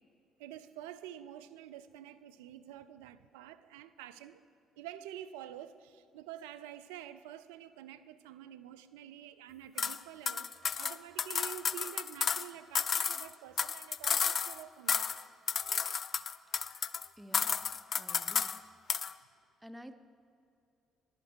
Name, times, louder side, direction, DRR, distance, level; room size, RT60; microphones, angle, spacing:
voice 1, 0.4-4.4 4.8-10.5 10.8-15.1, right 11 dB, 75° right, 12 dB, 0.3 m, -48 dB
sound 1, 9.8-10.0 10.3-12.5 12.7-14.6 14.9-15.2 15.5-17.1 17.3-18.6 18.9-19.1, left 6 dB, 45° left, 0.3 m, -32 dB
voice 2, 17.2-17.6 18.0-18.5 19.6-19.9, equal, 10° right, 9 dB, 0.6 m, -50 dB
11.0 x 8.2 x 4.6 m, 2.6 s
hypercardioid pair, 50°, 0 cm